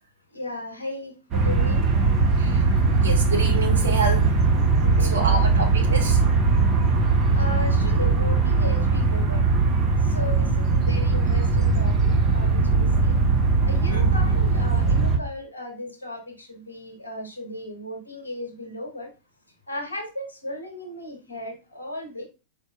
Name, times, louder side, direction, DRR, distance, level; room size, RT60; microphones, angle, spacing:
voice 1, 0.3-1.9 4.8-5.7 7.3-9.5 10.0-13.1 13.6-19.1 19.7-22.3, left 1 dB, 80° left, 0.9 m, -36 dB
sound 1, 1.3-15.2, right 4 dB, 35° right, 0.8 m, -20 dB
voice 2, 3.0-4.4 5.0-6.2 13.9-14.1, right 3 dB, 70° right, 0.8 m, -28 dB
4.1 x 3.6 x 2.2 m
figure-of-eight pair, 90°, 0 cm